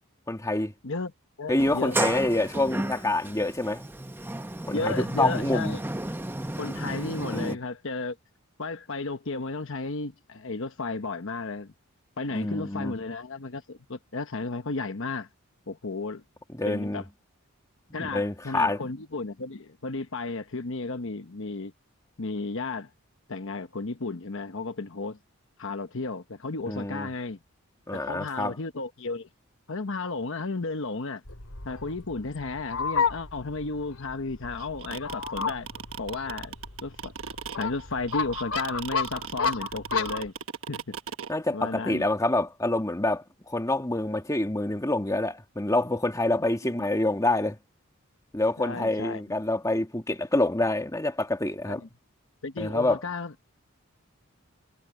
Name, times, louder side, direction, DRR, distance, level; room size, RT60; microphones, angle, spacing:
voice 1, 0.3-0.7 1.5-3.8 4.7-5.8 6.8-7.0 7.3-7.6 12.3-12.9 16.5-17.0 18.0-18.8 26.6-27.1 27.9-28.5 41.3-47.6 48.3-51.8 52.6-53.0, left 2 dB, 15° left, 1.9 m, -27 dB
voice 2, 1.4-2.1 4.7-5.8 6.6-8.2 8.6-11.7 12.2-15.3 15.7-16.2 16.6-17.0 17.9-21.7 22.2-22.9 23.3-25.2 25.6-27.4 27.9-29.3 29.7-31.2 31.6-35.7 36.0-36.5 36.8-37.1 37.6-40.3 40.7-40.9 41.5-42.1 46.6-46.7 48.6-49.2 51.6-51.9 52.4-53.5, left 3 dB, 65° left, 1.1 m, -33 dB
Sliding door, 1.6-7.5, right 1 dB, 10° right, 0.8 m, -33 dB
Fowl, 31.2-40.3, left 5 dB, 80° left, 3.5 m, -32 dB
sound 1, 34.6-41.3, right 7 dB, 70° right, 1.2 m, -37 dB
head